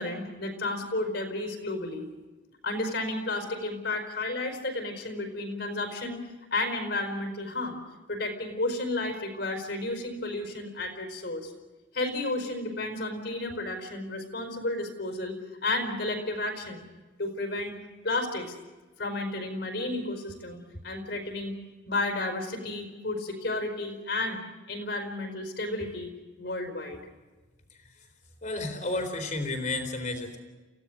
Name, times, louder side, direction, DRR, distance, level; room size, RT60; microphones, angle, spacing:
voice 1, 0.0-2.1 2.6-6.2 6.5-7.8 8.1-11.5 11.9-15.3 15.6-16.8 17.2-17.7 18.0-18.5 19.0-21.6 21.8-24.4 24.7-26.1 26.4-27.0, left 2 dB, 60° left, 4 dB, 5.0 m, -32 dB
voice 2, 28.4-30.4, left 2 dB, 40° left, 6 dB, 4.0 m, -31 dB
29.5 x 17.0 x 6.4 m, 1.2 s
head